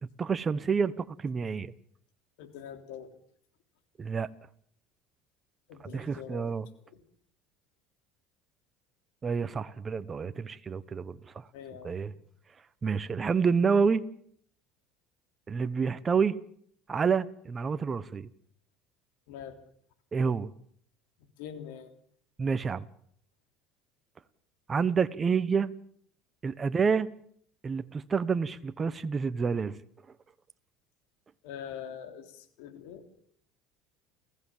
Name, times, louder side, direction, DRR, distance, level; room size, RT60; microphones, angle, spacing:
voice 1, 0.2-1.7 4.0-4.3 5.9-6.7 9.2-11.2 11.8-12.1 12.8-14.0 15.5-16.4 16.9-18.3 20.1-20.5 22.4-22.9 24.7-25.7 26.4-27.1 27.6-29.7, right 5 dB, 25° right, 1.1 m, -28 dB
voice 2, 2.4-3.1 5.7-6.5 6.8-7.0 11.5-11.9 19.3-19.6 21.4-21.9 31.4-33.1, left 8 dB, 80° left, 3.6 m, -43 dB
29.5 x 15.5 x 7.4 m
supercardioid pair, 105°, 0 cm